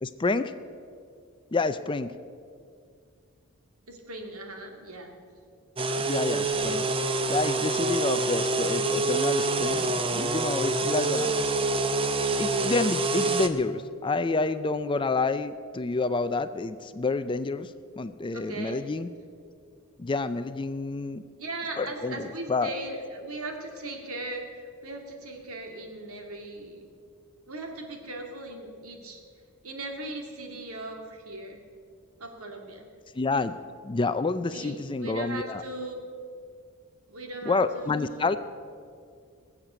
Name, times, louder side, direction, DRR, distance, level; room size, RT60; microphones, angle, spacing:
voice 1, 0.0-0.5 1.5-2.1 6.0-6.8 7.3-11.3 12.4-19.1 20.0-21.2 21.8-22.7 33.1-33.5 33.8-35.6 37.5-38.4, left 3 dB, 20° left, 12 dB, 0.4 m, -28 dB
voice 2, 3.9-5.1 18.3-18.8 21.4-26.9 27.5-29.2 29.6-31.6 32.2-32.9 34.5-36.0 37.1-38.4, right 2 dB, 75° right, 2 dB, 2.3 m, -39 dB
sound 1, 5.8-13.5, right 3 dB, 25° right, 0.7 m, -26 dB
20.5 x 7.4 x 8.0 m, 2.3 s
head